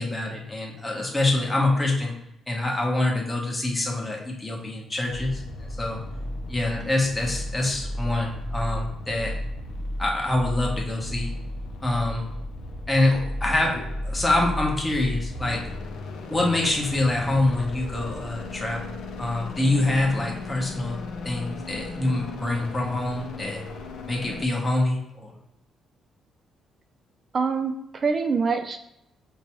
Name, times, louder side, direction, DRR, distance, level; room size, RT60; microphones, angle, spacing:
voice 1, 0.0-2.1 2.5-5.4 5.8-6.0 6.5-9.3 10.0-11.3 11.8-12.3 12.9-15.6 16.3-21.0 21.2-23.6 24.1-25.3, left 2 dB, 15° left, -1 dB, 1.0 m, -25 dB
sound 1, 5.1-24.5, left 1 dB, 80° left, 0.5 m, -35 dB
voice 2, 27.3-28.8, right 5 dB, 40° right, 7 dB, 0.4 m, -25 dB
4.5 x 2.2 x 3.0 m, 0.81 s
cardioid pair, 90°, 0 cm